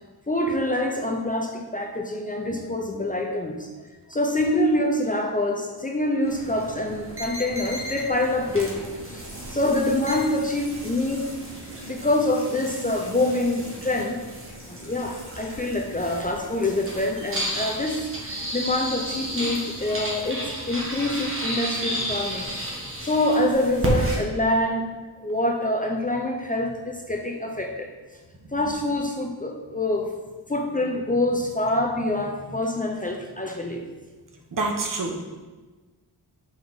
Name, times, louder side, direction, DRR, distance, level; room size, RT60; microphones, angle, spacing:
voice 1, 0.3-3.7 4.1-11.3 11.9-14.2 14.7-22.5 23.0-24.9 25.2-27.9 28.5-30.1 30.5-33.8, left 1 dB, 20° left, 2 dB, 0.6 m, -26 dB
sound 1, 6.2-24.2, equal, 30° right, 1.4 m, -33 dB
voice 2, 34.5-35.3, right 3 dB, 50° right, 2 dB, 0.9 m, -27 dB
5.4 x 4.5 x 4.0 m, 1.3 s
wide cardioid pair, 90°, 42 cm